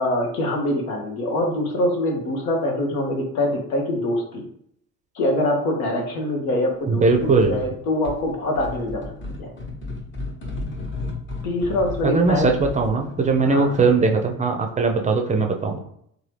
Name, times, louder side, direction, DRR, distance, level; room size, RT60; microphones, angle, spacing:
voice 1, 0.0-4.4 5.1-9.0 9.4-9.5 11.4-12.5 13.5-13.7, left 1 dB, 80° left, 2 dB, 0.9 m, -24 dB
voice 2, 6.9-7.6 12.0-15.8, right 4 dB, 20° right, 3 dB, 0.5 m, -20 dB
sound 1, 7.0-7.7 8.0-14.1, left 3 dB, 25° left, 1.0 m, -34 dB
2.8 x 2.3 x 3.3 m, 0.70 s
hypercardioid pair, 65°, 42 cm